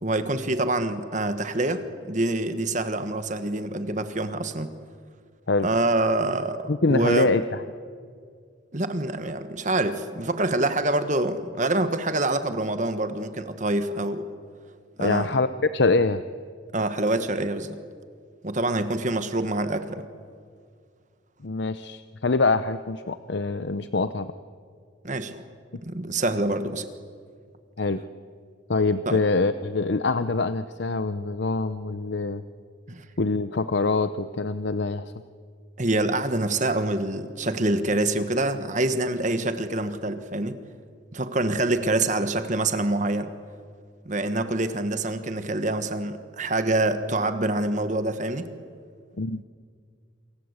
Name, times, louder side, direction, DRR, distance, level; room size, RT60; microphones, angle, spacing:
voice 1, 0.0-4.7 5.6-7.3 8.7-14.3 15.0-15.3 16.7-17.8 18.4-20.0 25.0-25.4 25.9-26.9 29.1-29.2 32.9-33.0 35.8-40.6 41.1-43.3 44.0-48.5, right 2 dB, 40° right, 9 dB, 1.4 m, -26 dB
voice 2, 6.7-7.4 15.0-15.5 15.7-16.2 21.4-24.3 27.8-28.0 28.7-32.4 33.2-35.1 49.2-49.4, left 3 dB, 60° left, 12 dB, 0.7 m, -24 dB
28.0 x 24.0 x 8.2 m, 2.1 s
head